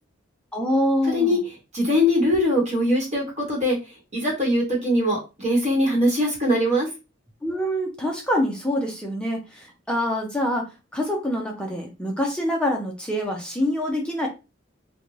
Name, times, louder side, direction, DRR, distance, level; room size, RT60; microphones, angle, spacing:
voice 1, 0.5-1.4 7.4-10.7 10.9-14.3, equal, 5° left, 0 dB, 0.5 m, -25 dB
voice 2, 1.7-3.8 4.1-6.9, left 1 dB, 35° right, -3 dB, 1.1 m, -21 dB
2.5 x 2.2 x 3.1 m, 0.27 s
head